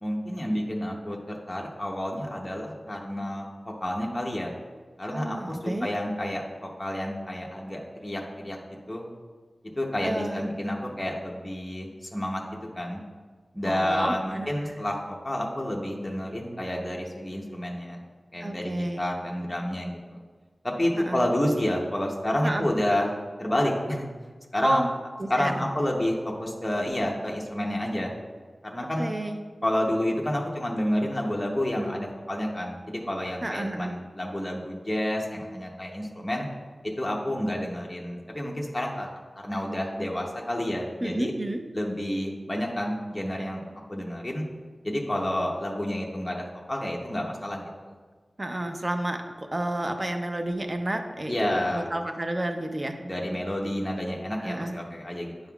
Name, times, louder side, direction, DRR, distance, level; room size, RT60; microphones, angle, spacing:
voice 1, 0.0-3.5 3.8-4.5 5.0-8.6 8.9-9.1 9.7-12.4 12.8-13.0 13.5-18.0 18.3-20.2 20.6-23.1 23.4-24.1 24.5-24.8 25.3-28.1 28.6-29.1 29.6-36.5 37.0-39.1 39.4-41.3 41.7-43.6 43.9-44.5 44.8-47.9 51.3-51.9 53.0-55.3, left 1 dB, 15° left, -2 dB, 0.8 m, -29 dB
voice 2, 5.1-5.9 10.0-10.4 13.6-14.5 18.4-19.0 20.9-21.2 22.4-22.7 24.6-24.9 25.2-25.6 28.8-29.4 33.4-33.9 41.0-41.6 48.4-53.0 54.4-54.8, right 1 dB, 30° right, 5 dB, 0.6 m, -30 dB
10.0 x 5.5 x 2.4 m, 1.5 s
wide cardioid pair, 90°, 0 cm